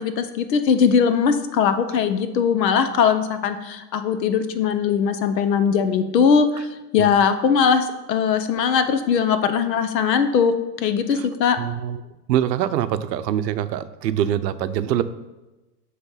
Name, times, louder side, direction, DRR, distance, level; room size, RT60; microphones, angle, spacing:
voice 1, 0.0-6.7 6.9-10.5 10.8-11.6, left 6 dB, 85° left, 10 dB, 0.9 m, -20 dB
voice 2, 11.6-12.0 12.3-15.0, right 11 dB, 85° right, 12 dB, 0.6 m, -24 dB
8.1 x 3.2 x 5.6 m, 1.1 s
hypercardioid pair, 130°, 49 cm